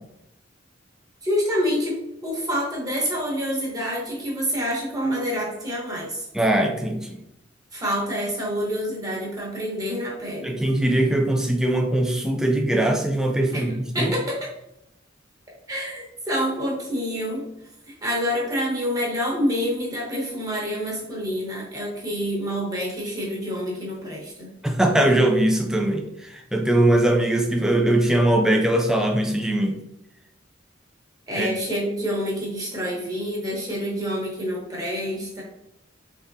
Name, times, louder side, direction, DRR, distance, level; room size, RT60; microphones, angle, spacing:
voice 1, 1.2-6.3 7.7-10.6 13.5-13.6 13.9-14.3 15.7-17.5 17.9-24.5 31.3-35.4, equal, 20° right, -4 dB, 1.2 m, -27 dB
voice 2, 6.3-7.1 10.4-13.7 14.0-14.1 24.6-29.7 31.4-31.5, right 1 dB, 5° right, 2 dB, 0.4 m, -21 dB
3.6 x 3.4 x 2.7 m, 0.84 s
head